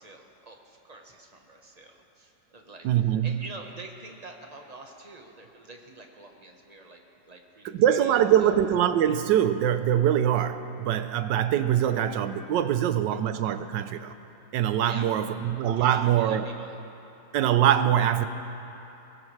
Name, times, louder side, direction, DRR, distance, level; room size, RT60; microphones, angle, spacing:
voice 1, 0.0-2.9 3.2-8.5 14.8-15.4 15.8-16.8, right 2 dB, 25° right, 2 dB, 1.0 m, -46 dB
voice 2, 2.8-3.4 7.6-14.1 14.5-16.4 17.3-18.3, right 10 dB, 80° right, 11 dB, 1.3 m, -23 dB
22.5 x 18.0 x 3.2 m, 2.9 s
omnidirectional pair, 1.9 m